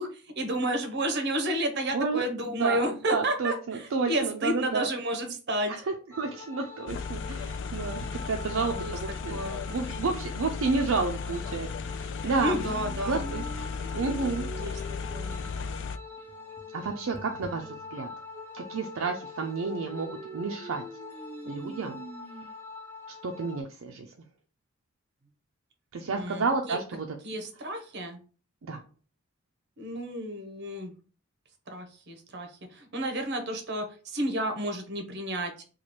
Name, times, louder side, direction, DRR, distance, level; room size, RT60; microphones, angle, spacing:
voice 1, 0.0-5.7 8.6-8.9 9.3-9.6 12.4-13.3 14.6-14.8 15.1-15.5 26.1-26.8 27.2-28.2 29.8-30.9 31.7-35.6, right 1 dB, 55° right, 6 dB, 0.8 m, -31 dB
voice 2, 3.1-4.9 5.7-9.4 9.7-12.6 13.1-13.4 13.9-14.8 16.7-18.1 18.5-20.1 20.3-20.8 21.5-22.0 23.2-24.1 25.9-27.2 28.6-28.8, right 4 dB, 70° right, 2 dB, 0.5 m, -31 dB
sound 1, 6.1-23.6, left 3 dB, 10° left, 1.0 m, -45 dB
sound 2, 6.9-16.0, left 5 dB, 60° left, 0.3 m, -35 dB
sound 3, 12.4-22.4, equal, 10° right, 0.6 m, -45 dB
3.0 x 2.4 x 4.2 m, 0.37 s
head